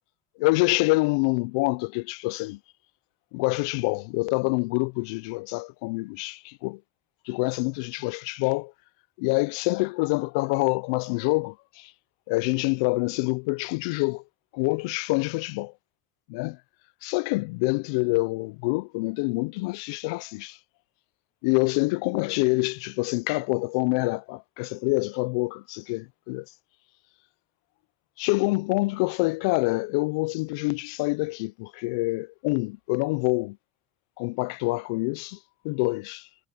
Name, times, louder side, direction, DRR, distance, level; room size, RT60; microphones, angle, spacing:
voice 1, 0.4-2.6 3.3-6.8 7.3-8.7 9.2-11.9 12.3-14.2 14.5-15.7 16.3-16.6 17.0-20.6 21.4-26.4 28.2-33.6 34.2-35.4 35.6-36.2, left 27 dB, 80° left, 0.3 m, -26 dB
supercardioid pair, 125°, 3 cm